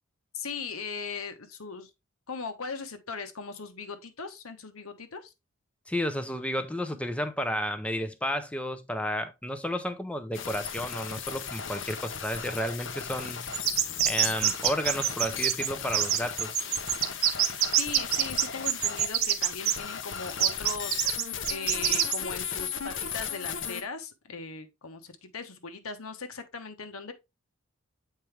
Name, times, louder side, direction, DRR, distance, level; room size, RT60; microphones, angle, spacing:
voice 1, 0.3-1.9 2.3-5.3 17.8-27.1, left 5 dB, 80° left, 1.1 m, -39 dB
voice 2, 5.9-13.5 14.0-16.6, equal, 5° left, 0.6 m, -32 dB
sound 1, 10.3-23.8, left 7 dB, 60° left, 0.8 m, -36 dB
sound 2, 13.5-19.7 20.4-22.2, right 11 dB, 75° right, 0.8 m, -25 dB
7.6 x 4.6 x 3.3 m
head